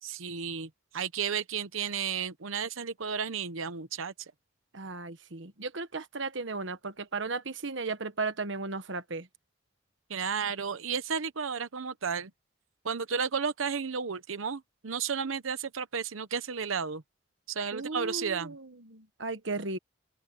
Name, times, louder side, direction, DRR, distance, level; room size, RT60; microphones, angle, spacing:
voice 1, 0.0-4.3 10.1-12.3 12.8-17.0 17.5-18.6, right 6 dB, 85° right, 0.9 m, -33 dB
voice 2, 4.7-9.3 17.7-19.8, right 3 dB, 65° right, 1.4 m, -35 dB
open air
head